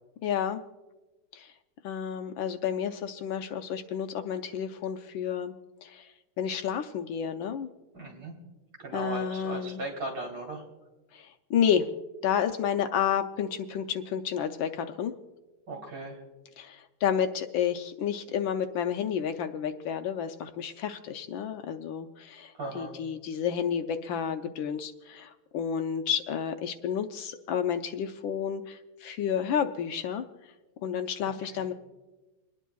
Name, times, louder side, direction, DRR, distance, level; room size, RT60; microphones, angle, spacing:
voice 1, 0.2-0.6 1.3-1.5 1.8-5.5 5.8-6.1 6.4-7.7 8.9-9.8 11.1-15.1 16.6-30.2 30.8-31.7, left 8 dB, 75° left, 7 dB, 1.3 m, -30 dB
voice 2, 7.9-8.3 8.8-10.6 15.7-16.2 22.6-22.9 31.2-31.6, right 2 dB, 65° right, -1 dB, 3.9 m, -37 dB
29.5 x 10.0 x 2.3 m, 1.1 s
omnidirectional pair, 2.3 m